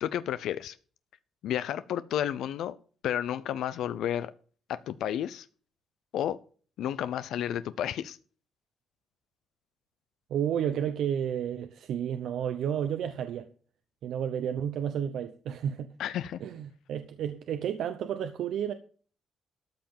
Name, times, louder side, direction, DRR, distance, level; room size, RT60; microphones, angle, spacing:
voice 1, 0.0-0.8 1.4-2.8 3.0-4.3 4.7-5.5 6.1-6.4 6.8-8.2 16.0-16.4, left 10 dB, 80° left, 0.6 m, -31 dB
voice 2, 10.3-13.5 14.0-15.9 16.4-18.7, right 9 dB, 75° right, 0.8 m, -31 dB
13.0 x 5.9 x 7.1 m
cardioid pair, 140°, 0 cm